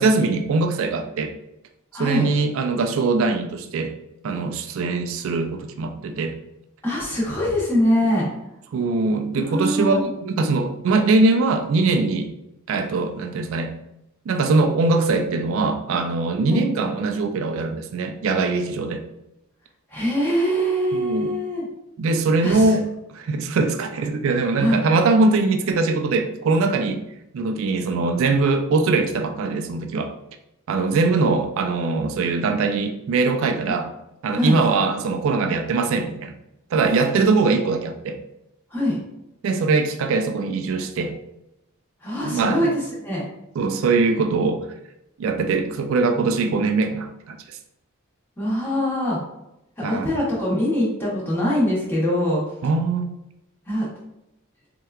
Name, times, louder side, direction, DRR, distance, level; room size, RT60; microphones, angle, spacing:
voice 1, 0.0-1.3 2.0-3.9 4.2-6.3 8.7-12.3 12.7-13.7 14.3-19.0 20.9-21.3 22.0-27.0 27.3-30.1 30.7-33.9 34.2-36.3 36.7-38.2 39.4-41.1 42.1-42.6 43.6-44.7 45.2-47.6 49.8-50.1 52.6-53.1, right 3 dB, 65° right, 5 dB, 0.3 m, -22 dB
voice 2, 1.9-2.3 6.8-8.3 9.4-10.1 16.4-16.6 19.9-21.7 22.4-22.7 24.6-24.8 33.7-33.8 34.4-34.6 38.7-39.0 42.0-43.2 48.4-49.2 49.8-52.4 53.7-53.9, equal, 10° left, -7 dB, 0.9 m, -23 dB
4.2 x 2.2 x 2.3 m, 0.87 s
head